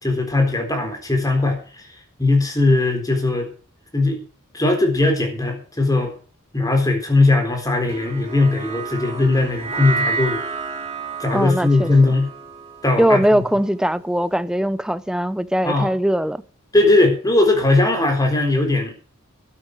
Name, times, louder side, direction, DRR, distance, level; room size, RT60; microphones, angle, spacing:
voice 1, 0.0-1.6 2.2-3.5 3.9-4.2 4.5-6.1 6.5-10.4 11.2-12.3 12.8-13.4 15.6-15.9 16.7-18.9, left 2 dB, 15° left, 4.0 m, -19 dB
sound 1, 7.9-14.3, right 4 dB, 30° right, 2.6 m, -30 dB
voice 2, 11.3-11.9 13.0-16.4, equal, 5° right, 0.6 m, -20 dB
12.5 x 8.6 x 6.6 m
head